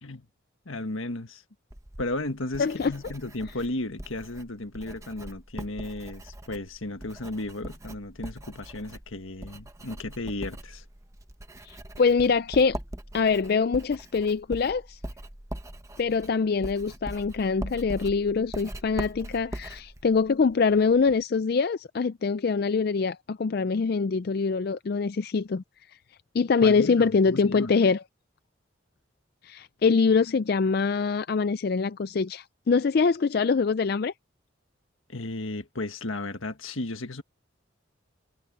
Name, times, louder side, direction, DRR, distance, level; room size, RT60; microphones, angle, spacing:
voice 1, 0.6-1.4 2.0-10.8 26.6-27.7 35.1-37.2, left 2 dB, 80° left, 1.7 m, -34 dB
Writing, 1.7-21.2, right 1 dB, 15° right, 1.0 m, -41 dB
voice 2, 2.6-2.9 11.6-12.8 13.1-15.0 16.0-25.6 26.3-28.0 29.4-34.1, left 5 dB, 50° left, 0.4 m, -24 dB
head